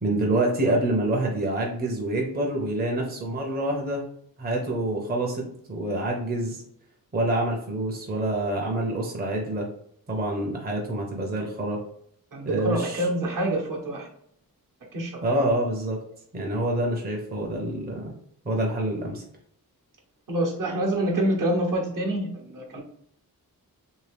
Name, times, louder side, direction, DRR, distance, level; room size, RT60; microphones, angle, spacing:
voice 1, 0.0-4.0 4.4-6.6 7.1-9.7 10.1-11.8 12.4-13.1 15.2-16.0 16.3-18.1 18.4-19.2, right 1 dB, 25° right, 0 dB, 0.6 m, -27 dB
voice 2, 12.3-14.1 14.9-15.5 20.3-22.8, right 1 dB, 60° right, 0 dB, 0.9 m, -27 dB
3.0 x 2.7 x 3.3 m, 0.67 s
wide cardioid pair, 145°, 36 cm